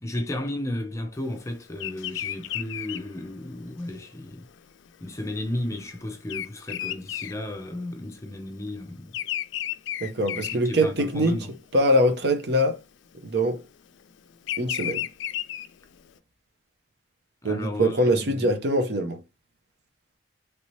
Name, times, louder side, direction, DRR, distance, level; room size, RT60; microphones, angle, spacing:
voice 1, 0.0-4.5 5.0-9.1 10.5-11.6 17.4-18.5, left 1 dB, 15° left, 0.5 m, -34 dB
Bird vocalization bird call bird song, 1.8-8.2 8.4-11.3 11.8-12.2 13.1-16.1, left 11 dB, 80° left, 0.3 m, -34 dB
voice 2, 10.0-11.4 11.7-12.8 13.2-13.6 14.6-15.0 17.4-19.2, equal, 60° right, 0.7 m, -23 dB
3.3 x 2.7 x 3.1 m
head